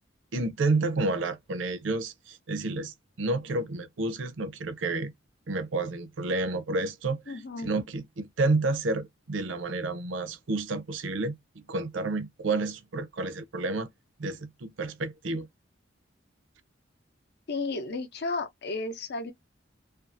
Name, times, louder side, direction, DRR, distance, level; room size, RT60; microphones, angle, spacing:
voice 1, 0.3-5.1 5.5-11.4 11.7-13.9 14.2-15.5, right 2 dB, 80° right, 0.5 m, -30 dB
voice 2, 7.3-7.7 17.5-19.3, left 3 dB, 60° left, 0.6 m, -33 dB
2.6 x 2.3 x 2.5 m
head